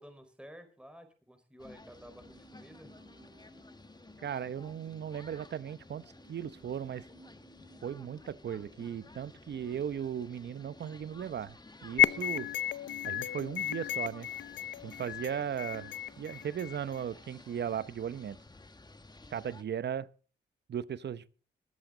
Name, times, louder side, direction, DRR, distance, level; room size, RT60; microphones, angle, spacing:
voice 1, 0.0-2.9, equal, 5° right, 4.4 m, -52 dB
sound 1, 1.6-19.6, left 2 dB, 20° left, 1.5 m, -54 dB
sound 2, 1.8-11.1 11.4-11.5, right 6 dB, 40° right, 1.8 m, -64 dB
voice 2, 4.2-7.1 7.8-12.5 13.0-14.3 14.8-18.4 19.3-20.1 20.7-21.3, right 8 dB, 65° right, 0.9 m, -37 dB
sound 3, 12.0-17.0, left 11 dB, 80° left, 0.6 m, -33 dB
23.5 x 8.1 x 3.9 m
cardioid pair, 70°, 19 cm